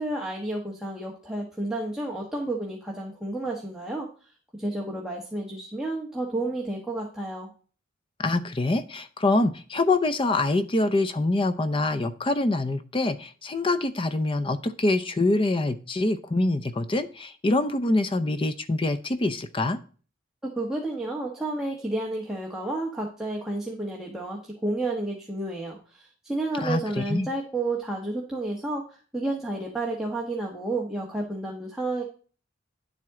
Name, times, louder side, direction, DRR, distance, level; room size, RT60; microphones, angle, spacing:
voice 1, 0.0-4.3 4.6-7.5 20.4-32.0, right 2 dB, 5° right, -2 dB, 1.3 m, -31 dB
voice 2, 8.2-19.8 26.6-27.3, left 2 dB, 25° left, 9 dB, 0.6 m, -25 dB
10.5 x 7.6 x 3.7 m, 0.40 s
head